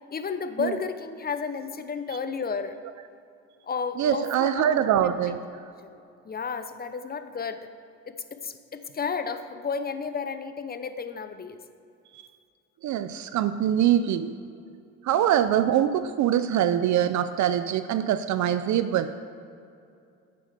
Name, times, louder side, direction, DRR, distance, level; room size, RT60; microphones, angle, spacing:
voice 1, 0.1-2.8 3.6-5.2 6.2-7.7 8.0-11.6 15.1-15.5, left 5 dB, 30° left, 10 dB, 0.8 m, -32 dB
voice 2, 4.0-5.4 12.1-12.2 12.8-14.3 15.0-19.1, right 10 dB, 70° right, 11 dB, 0.5 m, -23 dB
8.6 x 7.7 x 6.6 m, 2.5 s
cardioid pair, 90°, 30 cm